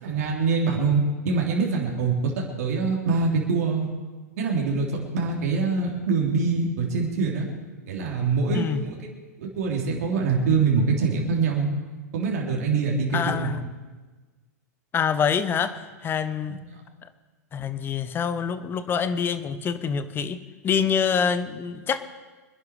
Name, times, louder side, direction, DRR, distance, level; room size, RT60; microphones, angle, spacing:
voice 1, 0.0-2.3 2.6-3.9 4.4-4.9 5.1-7.5 7.9-9.0 9.4-11.7 12.1-13.5, right 4 dB, 65° right, -1 dB, 3.6 m, -24 dB
voice 2, 13.1-13.6 14.9-16.6 17.5-20.4 20.6-22.0, left 7 dB, 25° left, 13 dB, 1.0 m, -26 dB
26.0 x 11.0 x 4.9 m, 1.3 s
hypercardioid pair, 105°, 9 cm